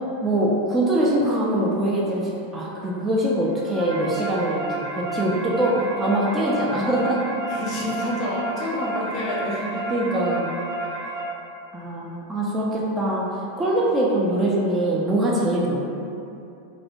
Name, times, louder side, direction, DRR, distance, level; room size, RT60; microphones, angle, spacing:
voice 1, 0.2-4.6 5.0-7.2 9.9-10.5 11.7-15.9, right 1 dB, 15° right, -5 dB, 0.3 m, -23 dB
sound 1, 3.4-11.2, right 2 dB, 65° right, 0.7 m, -31 dB
voice 2, 7.5-9.8 10.8-11.0 12.3-12.7 16.0-16.1, left 1 dB, 35° left, -5 dB, 0.5 m, -29 dB
2.3 x 2.1 x 2.8 m, 2.7 s
figure-of-eight pair, 90°, 0 cm